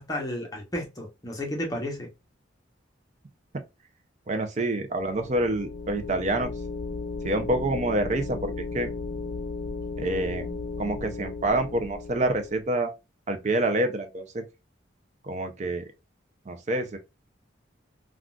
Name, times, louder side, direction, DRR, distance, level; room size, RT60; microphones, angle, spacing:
voice 1, 0.0-2.1, left 1 dB, 20° left, 0.9 m, -32 dB
voice 2, 4.3-6.5 7.2-8.9 10.0-12.9 13.3-14.4 15.2-15.8 16.5-17.0, right 2 dB, 35° right, 0.5 m, -27 dB
sound 1, 4.9-12.6, left 4 dB, 75° left, 0.5 m, -35 dB
3.7 x 2.4 x 2.3 m
head